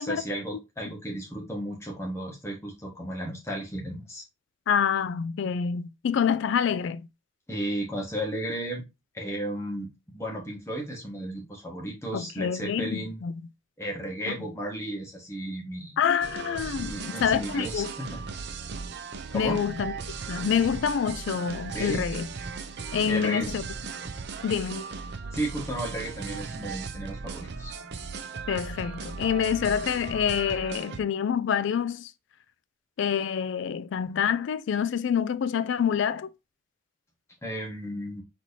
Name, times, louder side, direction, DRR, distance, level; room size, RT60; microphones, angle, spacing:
voice 1, 0.0-4.2 7.5-8.8 9.1-13.2 13.8-16.0 16.8-18.2 19.3-19.6 21.7-22.1 23.0-23.5 25.3-27.8 37.4-38.2, right 1 dB, 15° left, 1.6 m, -34 dB
voice 2, 4.7-7.0 12.1-13.4 14.3-14.4 16.0-17.9 19.3-19.9 20.3-22.3 22.9-23.6 24.4-24.8 28.5-32.1 33.0-36.3, left 7 dB, 60° left, 0.3 m, -27 dB
sound 1, 16.2-31.0, right 5 dB, 55° right, 0.5 m, -37 dB
4.6 x 4.2 x 2.7 m
head